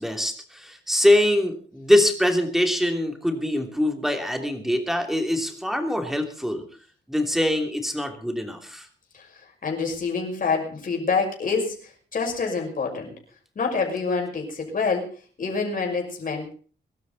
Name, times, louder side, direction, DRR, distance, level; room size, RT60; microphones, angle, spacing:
voice 1, 0.0-6.6 7.1-8.9, left 1 dB, ahead, 4 dB, 3.0 m, -23 dB
voice 2, 9.6-13.1 13.6-15.1 15.4-16.5, left 4 dB, 45° left, 1 dB, 6.2 m, -26 dB
23.5 x 12.0 x 4.1 m, 0.40 s
wide cardioid pair, 120°, 19 cm